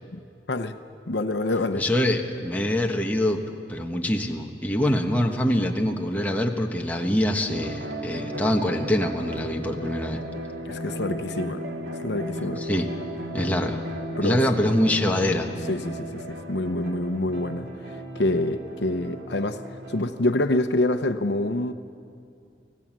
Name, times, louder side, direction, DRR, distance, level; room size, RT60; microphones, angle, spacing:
voice 1, 1.1-1.8 10.6-11.6 12.0-12.6 14.2-14.4 15.7-19.6 19.9-21.7, left 2 dB, 75° left, 9 dB, 0.9 m, -26 dB
voice 2, 1.8-3.4 3.7-10.2 12.6-12.9 13.3-13.8 14.2-15.5, left 1 dB, 10° left, 1 dB, 1.2 m, -24 dB
sound 1, 7.5-20.0, equal, 80° right, 2.0 m, -35 dB
25.0 x 17.5 x 7.5 m, 2.4 s
head